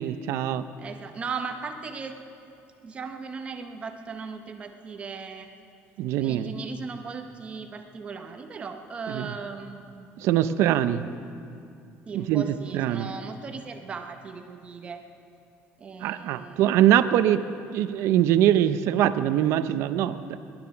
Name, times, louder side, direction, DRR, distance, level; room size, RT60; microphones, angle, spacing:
voice 1, 0.0-0.6 6.0-6.5 9.1-9.3 10.2-11.0 12.1-12.4 12.7-13.1 16.0-17.4 17.7-20.4, right 11 dB, 65° right, 12 dB, 0.6 m, -23 dB
voice 2, 0.8-2.2 2.8-5.5 6.2-10.1 12.1-15.0 15.8-16.8, right 5 dB, 25° right, 6 dB, 0.7 m, -37 dB
19.0 x 11.5 x 5.8 m, 2.5 s
cardioid pair, 175°, 5 cm